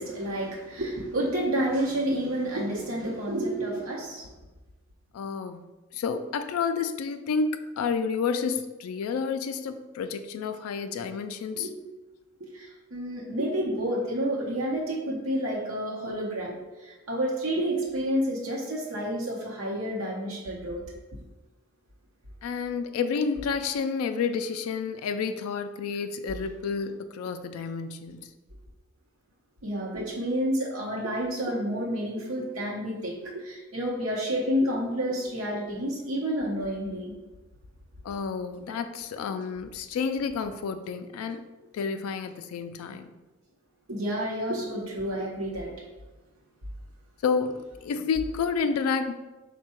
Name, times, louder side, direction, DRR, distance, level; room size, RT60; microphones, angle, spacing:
voice 1, 0.0-4.3 10.9-11.0 11.6-11.8 12.4-20.8 29.6-37.1 43.9-45.7, equal, 75° right, -4 dB, 0.8 m, -30 dB
voice 2, 5.1-5.6 5.9-11.7 22.4-28.3 38.0-41.4 41.7-43.1 47.2-49.1, left 5 dB, 85° left, 8 dB, 0.3 m, -30 dB
4.4 x 2.2 x 4.3 m, 1.1 s
head